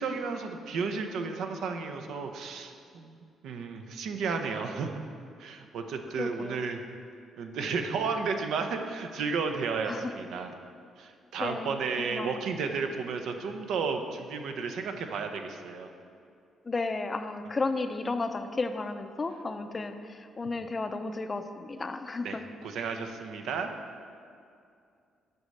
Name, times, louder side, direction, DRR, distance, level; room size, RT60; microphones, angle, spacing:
voice 1, 0.0-5.0 5.4-6.8 7.4-10.5 11.0-15.9 22.2-23.7, right 5 dB, 75° right, 6 dB, 0.6 m, -33 dB
voice 2, 6.2-6.6 9.9-10.1 11.4-12.4 16.7-22.5, left 3 dB, 30° left, 8 dB, 0.5 m, -33 dB
7.9 x 4.2 x 6.5 m, 2.4 s
cardioid pair, 90°, 0 cm